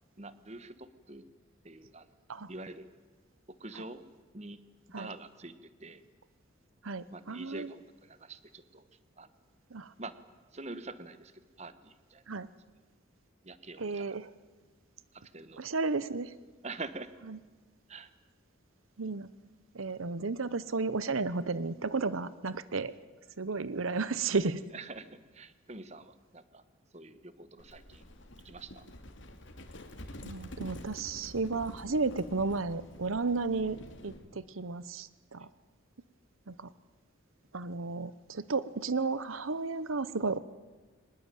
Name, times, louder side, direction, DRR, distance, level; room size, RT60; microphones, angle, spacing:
voice 1, 0.2-1.3 1.6-2.1 2.5-2.9 3.5-4.1 4.3-4.6 4.9-6.0 7.1-8.9 9.2-9.3 10.0-10.1 10.5-12.2 13.4-14.1 15.1-15.7 16.6-17.1 17.9-18.1 24.7-26.6 26.9-28.1 28.4-28.9, right 2 dB, 35° right, 12 dB, 1.3 m, -45 dB
voice 2, 6.8-7.7 9.7-9.9 12.3-12.5 13.8-14.3 15.6-16.3 19.0-19.3 19.7-22.9 23.4-24.6 30.2-33.8 34.0-35.5 36.5-36.7 37.5-40.4, right 4 dB, 85° right, 16 dB, 0.9 m, -33 dB
Livestock farm animals working animals, 27.6-34.3, left 1 dB, 65° left, 2.8 m, -48 dB
24.5 x 20.0 x 9.2 m, 1.3 s
head